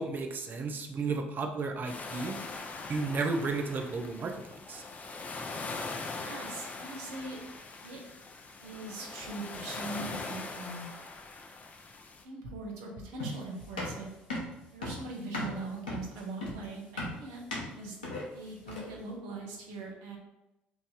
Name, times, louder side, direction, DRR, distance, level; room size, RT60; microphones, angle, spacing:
voice 1, 0.0-2.4 2.9-4.8, right 3 dB, 40° right, 4 dB, 0.6 m, -33 dB
sound 1, 1.8-12.2, left 3 dB, 35° left, 0.5 m, -41 dB
voice 2, 6.1-7.4 7.8-8.0 8.6-10.9 12.2-14.1 14.7-17.4 17.8-18.0 18.3-20.2, right 2 dB, 70° right, 0 dB, 0.8 m, -41 dB
sound 2, 13.2-19.0, left 1 dB, 90° left, 0.7 m, -37 dB
3.0 x 2.6 x 3.8 m, 0.93 s
hypercardioid pair, 55°, 5 cm